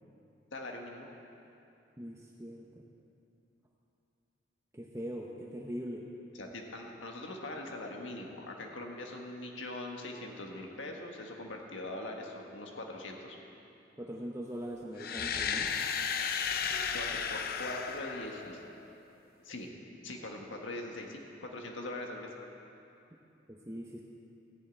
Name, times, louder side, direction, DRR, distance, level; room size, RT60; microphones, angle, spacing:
voice 1, 0.5-1.1 6.4-13.4 16.9-18.6 19.4-19.7 20.0-22.3, left 2 dB, 85° left, 1 dB, 1.5 m, -42 dB
voice 2, 2.0-2.8 4.7-6.1 14.0-15.8 23.5-24.0, equal, 15° right, -1 dB, 0.8 m, -41 dB
sound 1, 15.0-18.9, left 6 dB, 50° left, 0.6 m, -34 dB
14.0 x 7.3 x 9.1 m, 2.8 s
head